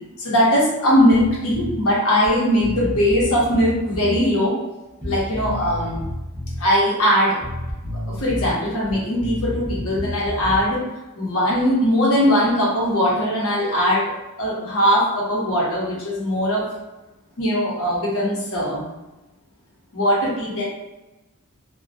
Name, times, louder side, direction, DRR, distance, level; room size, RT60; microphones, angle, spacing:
voice 1, 0.2-4.6 5.0-6.0 6.6-7.4 8.1-10.9 11.2-14.1 14.4-16.7 17.4-18.8 19.9-20.6, equal, 70° left, -5 dB, 0.9 m, -20 dB
Bass guitar, 1.1-1.8 2.2-2.3 2.6-4.2 5.0-6.6 7.4-8.5 8.8-10.7, equal, 5° left, 0.9 m, -30 dB
2.3 x 2.1 x 2.7 m, 1.0 s
head